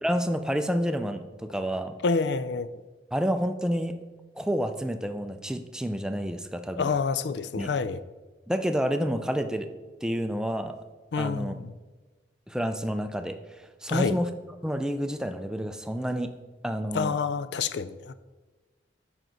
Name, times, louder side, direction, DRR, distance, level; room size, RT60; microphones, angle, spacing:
voice 1, 0.0-1.9 3.1-4.0 4.4-6.9 7.6-7.7 8.5-9.7 10.0-10.8 11.2-11.6 12.5-14.3 14.6-16.4 16.6-17.1, equal, 5° right, 0.4 m, -29 dB
voice 2, 2.0-2.7 6.8-8.0 11.1-11.7 13.9-14.2 16.9-18.1, left 5 dB, 70° left, 0.4 m, -28 dB
9.1 x 6.0 x 3.9 m
head